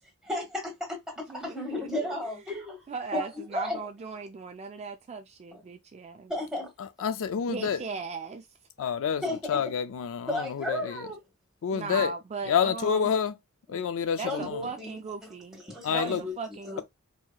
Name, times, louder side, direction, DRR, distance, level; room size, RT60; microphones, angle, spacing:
voice 1, 0.2-2.8 3.1-3.8 6.3-6.7 9.2-9.6 10.3-11.2 13.7-13.8 14.3-14.9 15.2-16.3 16.6-16.8, left 1 dB, ahead, 1.6 m, -34 dB
voice 2, 1.3-1.9 2.2-2.3 2.9-6.3 7.5-8.5 11.7-13.1 14.2-15.6 15.9-16.8, right 4 dB, 30° right, 0.3 m, -37 dB
voice 3, 6.8-7.8 8.8-9.2 9.5-11.1 11.6-12.1 12.5-13.3 13.7-14.6 15.8-16.2, left 7 dB, 65° left, 0.4 m, -28 dB
4.4 x 2.8 x 2.2 m
head